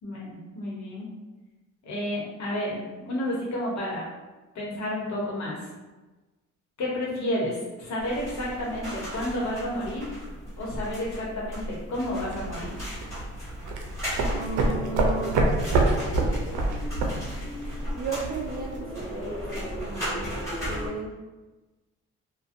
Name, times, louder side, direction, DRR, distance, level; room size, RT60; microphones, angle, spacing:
voice 1, 0.0-1.1 1.8-4.1 4.5-5.6 6.8-10.1 10.6-12.7, left 1 dB, 65° left, -3 dB, 1.0 m, -31 dB
sound 1, 8.0-20.9, equal, 10° left, 1.5 m, -35 dB
sound 2, 11.9-18.8, right 2 dB, 80° right, 0.5 m, -28 dB
voice 2, 14.2-15.4 18.0-20.4 20.7-21.1, right 4 dB, 30° right, 0 dB, 0.4 m, -35 dB
2.5 x 2.2 x 2.5 m, 1.2 s
cardioid pair, 90°, 30 cm